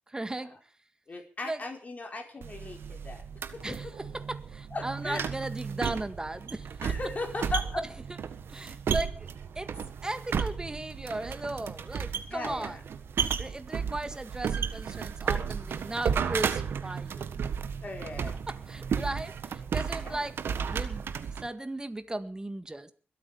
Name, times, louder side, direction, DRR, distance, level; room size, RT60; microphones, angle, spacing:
voice 1, 0.1-0.6 1.4-1.6 3.6-3.9 4.1-7.0 7.8-8.2 8.5-12.8 13.4-17.5 18.5-21.1 21.4-22.9, right 2 dB, 20° right, 10 dB, 1.8 m, -37 dB
voice 2, 1.1-3.2 3.5-3.8 4.7-5.3 6.8-7.8 12.3-12.8 17.8-18.3 20.0-20.2, left 3 dB, 40° left, 3 dB, 4.6 m, -37 dB
sound 1, 2.4-21.5, right 7 dB, 75° right, 1.4 m, -33 dB
22.0 x 8.6 x 7.0 m, 0.41 s
cardioid pair, 70°, 4 cm